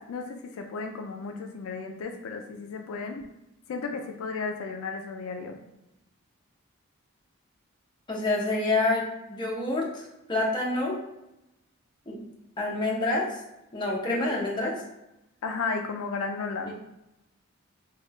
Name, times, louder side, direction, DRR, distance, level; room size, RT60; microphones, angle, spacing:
voice 1, 0.0-3.2 3.7-5.6 14.1-14.3 15.4-16.7, left 4 dB, 75° left, 4 dB, 0.3 m, -34 dB
voice 2, 8.1-10.9 12.1-12.2 12.6-13.2 13.7-14.7, left 2 dB, 20° left, -4 dB, 0.6 m, -27 dB
2.9 x 2.2 x 3.1 m, 0.90 s
head